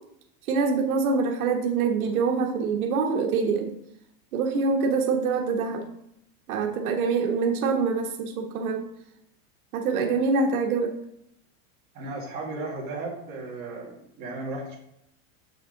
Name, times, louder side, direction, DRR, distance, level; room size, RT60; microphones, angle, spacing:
voice 1, 0.5-3.7 4.3-5.8 6.5-8.8 9.7-10.9, right 4 dB, 85° right, 1 dB, 1.4 m, -25 dB
voice 2, 11.9-14.7, right 2 dB, 20° right, -5 dB, 2.2 m, -35 dB
7.0 x 6.4 x 3.9 m, 0.77 s
supercardioid pair, 175°, 42 cm